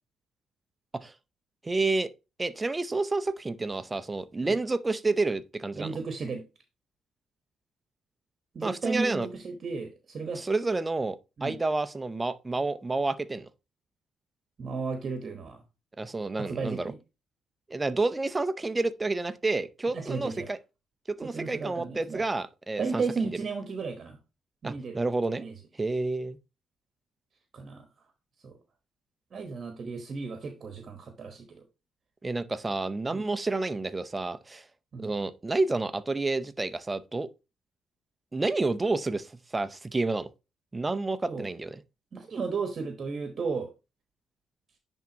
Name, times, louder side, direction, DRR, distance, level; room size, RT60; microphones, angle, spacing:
voice 1, 1.6-2.1 2.4-6.0 8.6-9.3 10.3-13.5 16.0-16.9 17.7-20.6 21.1-23.0 24.6-25.4 25.8-26.4 32.2-34.6 35.0-37.3 38.3-40.3 40.7-41.8, right 3 dB, 20° right, 0.6 m, -29 dB
voice 2, 5.8-6.4 8.5-10.4 11.4-11.6 14.6-15.6 16.3-17.0 19.9-20.5 21.2-22.2 22.8-24.2 24.6-25.0 25.4-25.5 27.5-27.9 28.4-28.6 29.3-31.5 33.1-33.3 34.9-35.1 41.3-41.5 42.1-43.7, right 4 dB, 45° right, 1.1 m, -34 dB
10.5 x 3.6 x 2.8 m
cardioid pair, 90°, 0 cm